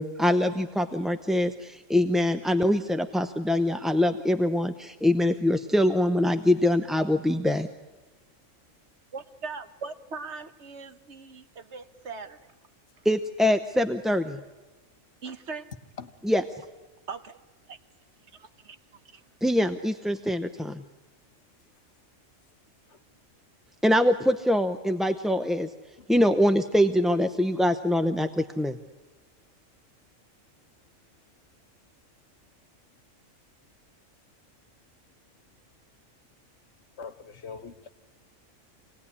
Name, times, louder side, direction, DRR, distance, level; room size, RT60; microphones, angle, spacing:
voice 1, 0.0-7.7 13.0-14.4 16.2-16.4 19.4-20.8 23.8-25.7 26.1-28.8, left 1 dB, ahead, 0.5 m, -24 dB
voice 2, 9.1-12.4 15.2-15.7 17.1-17.3 17.7-17.8 18.3-18.8, right 4 dB, 60° right, 1.4 m, -40 dB
voice 3, 37.0-37.9, left 5 dB, 60° left, 1.4 m, -42 dB
27.0 x 19.0 x 9.9 m
omnidirectional pair, 1.4 m